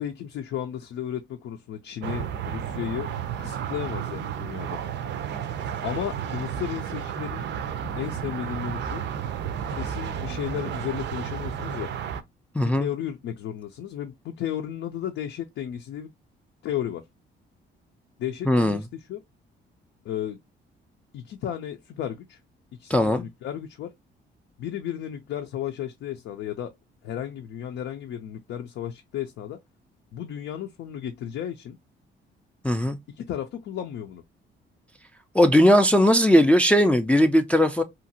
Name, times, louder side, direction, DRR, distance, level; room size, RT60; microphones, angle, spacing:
voice 1, 0.0-3.1 3.4-4.8 5.8-7.5 8.0-9.0 9.8-11.9 12.6-16.1 16.6-17.0 18.2-19.2 20.0-20.4 21.1-22.4 22.7-23.9 24.6-26.7 27.0-29.6 30.1-31.8 33.2-34.2, left 10 dB, 75° left, 0.5 m, -34 dB
sound 1, 2.0-12.2, right 8 dB, 65° right, 0.5 m, -32 dB
voice 2, 12.5-12.9 18.5-18.8 22.9-23.2 32.6-33.0 35.3-37.8, equal, 5° left, 0.3 m, -18 dB
2.8 x 2.5 x 2.7 m
cardioid pair, 90°, 20 cm